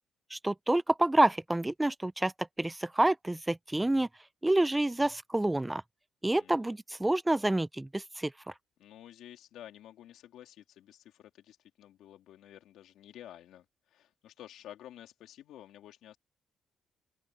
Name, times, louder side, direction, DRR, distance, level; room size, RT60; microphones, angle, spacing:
voice 1, 0.3-4.1 4.4-5.8 6.2-8.3, right 1 dB, 10° right, 0.5 m, -28 dB
voice 2, 6.3-6.7 8.8-13.6 13.9-16.2, left 12 dB, 80° left, 3.3 m, -51 dB
open air
cardioid pair, 90°, 0 cm